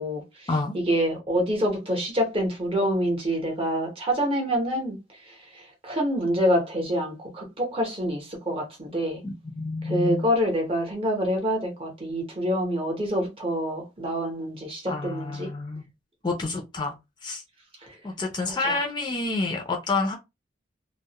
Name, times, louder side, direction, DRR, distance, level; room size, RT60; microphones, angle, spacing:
voice 1, 0.0-0.5 0.7-5.0 5.2-9.2 9.8-15.5 17.8-18.0 18.4-18.8, equal, 30° right, 0.7 m, -26 dB
voice 2, 9.2-10.3 14.9-15.8 16.2-16.9 17.2-17.4 18.0-20.2, left 3 dB, 25° left, 0.4 m, -28 dB
2.3 x 2.0 x 2.8 m
head